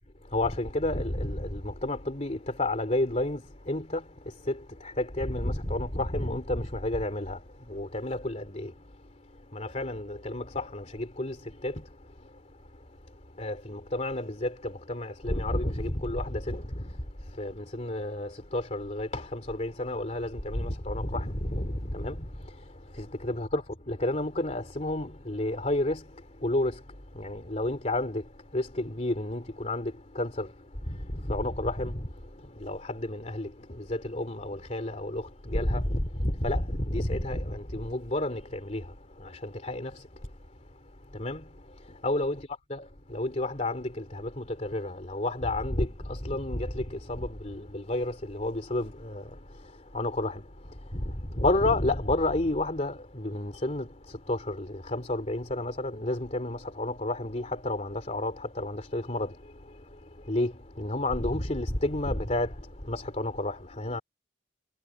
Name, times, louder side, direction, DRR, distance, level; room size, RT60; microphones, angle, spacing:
voice 1, 0.2-64.0, left 1 dB, 35° left, 2.9 m, -31 dB
head